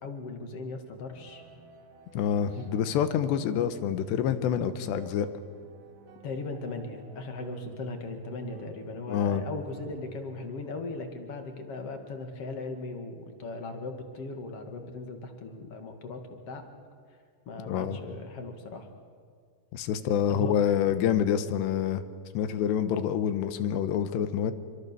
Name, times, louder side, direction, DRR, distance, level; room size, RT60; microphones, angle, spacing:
voice 1, 0.0-1.4 2.5-2.6 6.2-16.6 17.5-18.9 20.3-20.6, left 3 dB, 45° left, 5 dB, 2.5 m, -38 dB
sound 1, 1.1-10.9, right 3 dB, 85° right, 4.7 m, -51 dB
voice 2, 2.1-5.3 9.1-9.4 17.7-18.0 19.7-22.0 22.3-24.5, left 9 dB, 85° left, 11 dB, 3.3 m, -27 dB
26.5 x 23.5 x 6.9 m, 2.1 s
omnidirectional pair, 4.8 m